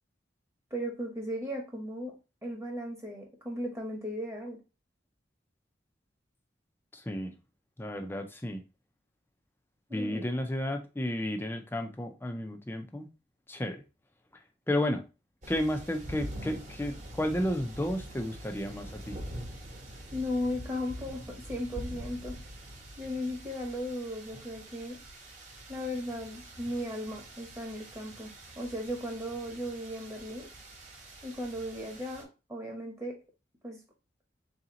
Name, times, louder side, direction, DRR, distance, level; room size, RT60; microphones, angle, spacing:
voice 1, 0.7-2.1 2.4-4.6 9.9-10.2 20.1-22.3 23.0-25.0 25.7-30.5 31.2-33.2 33.6-33.8, equal, 15° right, 1.0 m, -36 dB
voice 2, 6.9-7.3 7.8-8.6 9.9-13.1 13.5-13.8 14.7-15.1 15.5-19.2, left 1 dB, 10° left, 0.5 m, -32 dB
sound 1, 15.4-32.2, right 1 dB, 40° right, 1.1 m, -45 dB
3.8 x 2.9 x 3.7 m
head